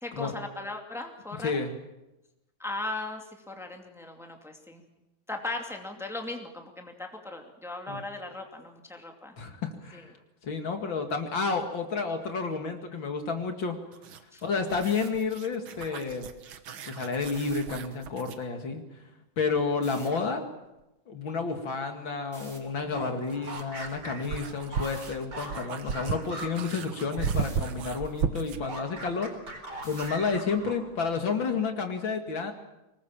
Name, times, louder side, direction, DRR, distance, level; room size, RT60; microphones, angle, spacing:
voice 1, 0.0-1.6 2.6-4.8 5.3-9.4 9.9-10.1 14.3-14.4, left 2 dB, ahead, 3 dB, 2.3 m, -38 dB
voice 2, 1.4-1.7 7.9-8.0 9.4-10.1 10.4-13.8 14.4-16.3 16.9-18.8 19.4-20.4 21.1-29.3 29.8-32.5, left 4 dB, 65° left, 5 dB, 2.9 m, -30 dB
sound 1, 13.9-18.5 20.8-20.9 22.9-28.7, right 6 dB, 75° right, 2.1 m, -35 dB
sound 2, 14.8-15.1 17.3-17.6 19.8-20.1 22.3-22.6 24.8-25.1 27.3-27.6 29.8-30.2, right 2 dB, 35° right, 3.9 m, -48 dB
sound 3, 22.7-27.5 27.7-31.0, right 1 dB, 50° right, 5.1 m, -42 dB
25.0 x 20.0 x 7.3 m, 0.96 s
omnidirectional pair, 2.3 m